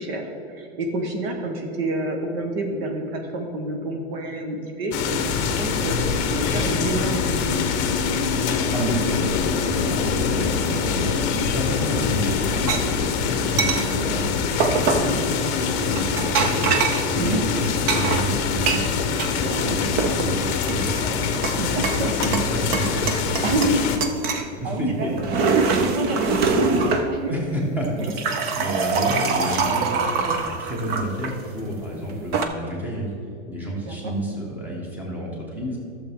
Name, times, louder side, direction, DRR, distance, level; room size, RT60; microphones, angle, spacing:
voice 1, 0.0-7.6 11.7-11.9 15.0-15.2 17.1-17.4 19.5-19.8 21.6-22.1 23.4-23.9 24.6-25.2 25.5-27.3 33.8-34.1, right 2 dB, 60° right, 3 dB, 1.3 m, -28 dB
sound 1, 4.9-24.0, left 6 dB, 35° left, 0.9 m, -24 dB
voice 2, 8.7-11.1 11.5-14.3 14.8-21.2 21.6-23.8 24.3-25.1 27.3-33.1 33.5-35.8, right 1 dB, 5° right, -2 dB, 1.5 m, -30 dB
sound 2, 12.7-12.8 13.6-13.8 14.6-15.1 15.9-17.1 17.9-19.3 19.7-20.3 20.7-21.6 21.8-22.5 22.7-23.8 24.0-24.5 25.0-27.1 27.8-31.3 32.1-32.4, right 4 dB, 30° right, 0.6 m, -23 dB
12.5 x 6.9 x 3.7 m, 2.7 s
supercardioid pair, 150°, 34 cm